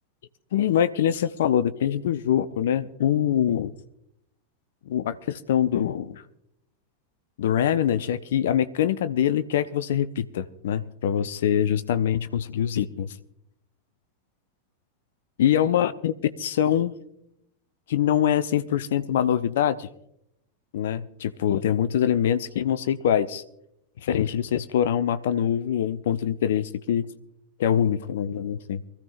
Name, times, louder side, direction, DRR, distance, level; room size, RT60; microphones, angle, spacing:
voice 1, 0.5-3.7 4.9-6.2 7.4-13.1 15.4-16.9 17.9-19.9 20.7-23.4 24.0-27.1 27.6-28.8, left 10 dB, 60° left, 13 dB, 0.6 m, -24 dB
24.0 x 14.5 x 2.5 m, 0.78 s
figure-of-eight pair, 90°, 0 cm